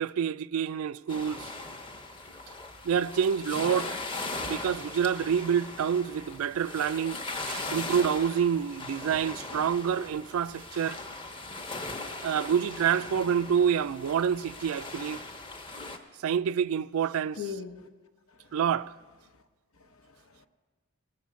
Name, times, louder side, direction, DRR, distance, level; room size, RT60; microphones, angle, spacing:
voice 1, 0.0-1.5 2.8-3.9 4.4-7.2 7.5-11.0 12.2-15.2 16.2-17.4 18.5-18.9, right 8 dB, 70° right, 0.3 m, -27 dB
sound 1, 1.1-16.0, left 2 dB, 25° left, 0.9 m, -39 dB
voice 2, 17.4-17.9 19.8-20.5, left 7 dB, 75° left, 0.9 m, -40 dB
19.0 x 7.0 x 6.2 m
head